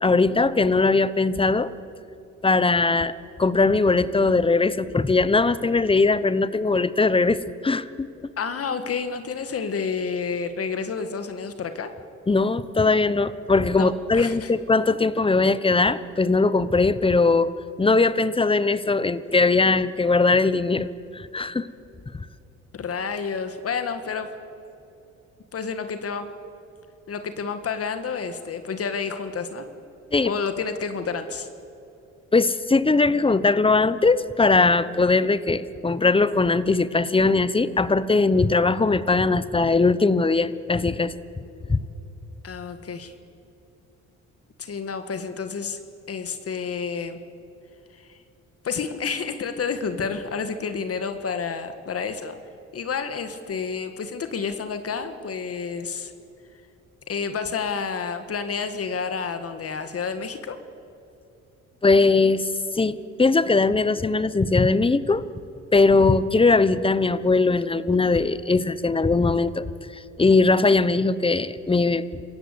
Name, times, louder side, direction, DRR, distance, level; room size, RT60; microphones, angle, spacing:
voice 1, 0.0-1.7 2.4-3.1 3.4-8.1 12.3-17.5 17.8-21.7 30.1-30.3 32.3-41.1 41.7-41.8 61.8-62.5 62.7-65.2 65.7-69.7 69.9-72.1, left 3 dB, 20° left, 16 dB, 1.0 m, -20 dB
voice 2, 8.4-11.9 13.7-14.5 22.7-24.3 25.5-26.3 27.1-29.7 30.2-31.5 42.4-43.1 44.6-45.8 46.1-47.2 47.9-48.2 48.6-52.4 52.7-56.1 57.1-60.6, left 5 dB, 50° left, 9 dB, 1.6 m, -30 dB
27.0 x 15.5 x 8.3 m, 2.8 s
cardioid pair, 90°, 30 cm